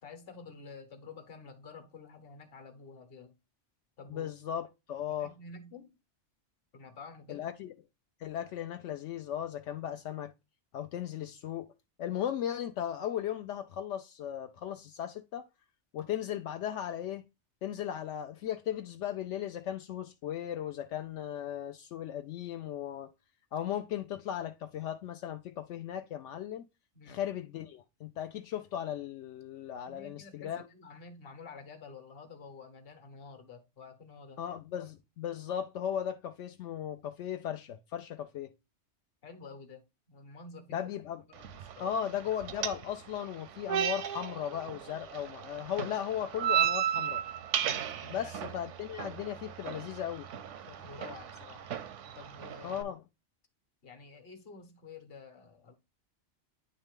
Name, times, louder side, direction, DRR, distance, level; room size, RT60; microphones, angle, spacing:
voice 1, 0.0-3.3 4.0-4.3 5.2-5.9 6.7-7.5 26.9-27.2 29.8-34.4 39.2-40.9 41.3-42.2 48.0-48.3 50.7-51.6 52.1-52.9 53.8-55.7, left 4 dB, 55° left, 1.2 m, -50 dB
voice 2, 4.1-5.3 7.3-7.7 8.2-10.3 10.7-11.7 12.0-15.5 15.9-17.2 17.6-23.1 23.5-26.6 27.1-30.6 34.4-38.5 40.7-41.2 41.8-47.2 48.1-50.3 52.6-53.0, left 10 dB, 80° left, 0.9 m, -37 dB
sound 1, 41.3-52.8, right 10 dB, 90° right, 1.0 m, -35 dB
9.6 x 3.2 x 3.6 m
omnidirectional pair, 1.2 m